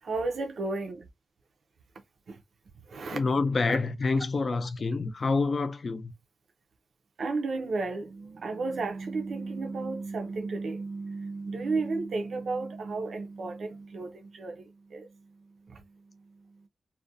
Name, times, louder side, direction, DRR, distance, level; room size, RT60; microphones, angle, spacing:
voice 1, 0.1-1.0 2.9-3.2 3.7-3.8 4.0-4.1 7.2-14.1 14.4-14.5 14.9-15.0, right 3 dB, 70° right, 0.5 m, -32 dB
voice 2, 3.1-6.1, left 3 dB, 45° left, 0.4 m, -27 dB
2.4 x 2.1 x 2.6 m
wide cardioid pair, 115°, 0 cm